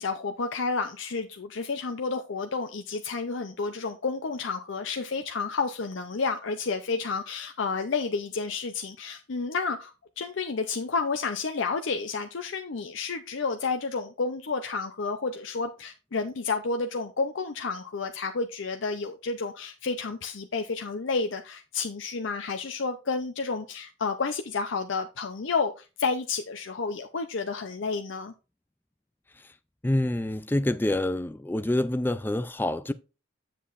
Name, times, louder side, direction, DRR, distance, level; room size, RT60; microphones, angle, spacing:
voice 1, 0.0-28.3, left 4 dB, 65° left, 0.6 m, -30 dB
voice 2, 29.8-32.9, left 1 dB, 10° left, 0.3 m, -27 dB
8.3 x 7.5 x 2.5 m
head